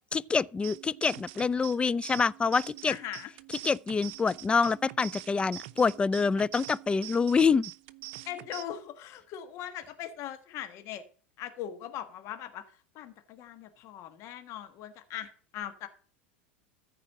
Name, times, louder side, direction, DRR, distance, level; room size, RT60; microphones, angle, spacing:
voice 1, 0.1-3.0 3.6-7.7, left 5 dB, 15° left, 0.4 m, -26 dB
sound 1, 0.6-8.6, right 19 dB, 65° right, 0.7 m, -45 dB
voice 2, 2.9-3.3 8.2-11.0 11.4-12.6 12.9-15.9, left 11 dB, 50° left, 1.5 m, -40 dB
14.0 x 4.9 x 7.6 m
hypercardioid pair, 95°, 6 cm